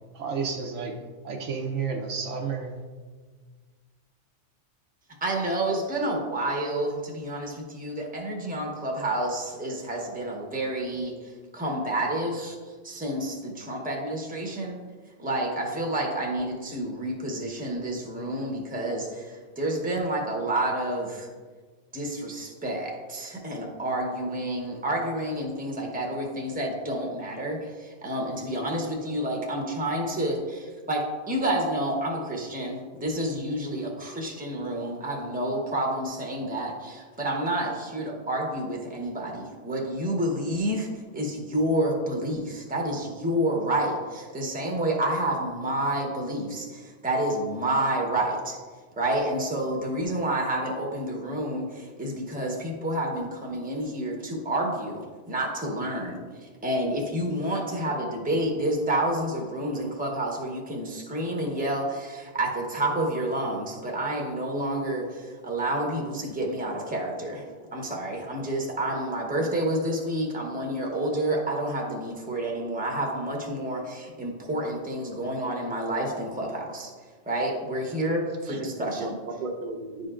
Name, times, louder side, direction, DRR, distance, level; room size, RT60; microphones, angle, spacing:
voice 1, 0.1-1.0 1.2-2.8, right 5 dB, 80° right, 2 dB, 1.2 m, -31 dB
voice 2, 5.2-11.1 11.5-12.5 12.8-14.8 15.2-21.3 21.9-40.9 41.1-48.6 49.0-56.2 56.6-67.4 67.7-76.9 77.3-79.0, right 1 dB, 10° right, 0 dB, 0.9 m, -29 dB
voice 3, 78.3-80.1, right 2 dB, 45° right, 3 dB, 0.8 m, -37 dB
10.0 x 5.0 x 2.5 m, 1.4 s
omnidirectional pair, 1.2 m